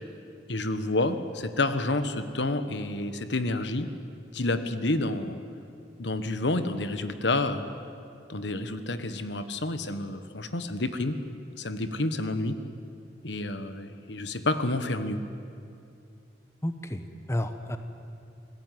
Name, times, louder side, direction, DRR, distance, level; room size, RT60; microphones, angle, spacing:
voice 1, 0.5-3.9 4.3-5.4 6.0-7.6 8.3-11.2 11.6-12.6 13.2-15.2, left 2 dB, 80° left, 10 dB, 1.4 m, -29 dB
voice 2, 16.6-17.8, left 1 dB, 15° left, 8 dB, 1.1 m, -31 dB
27.5 x 18.0 x 9.5 m, 2.6 s
head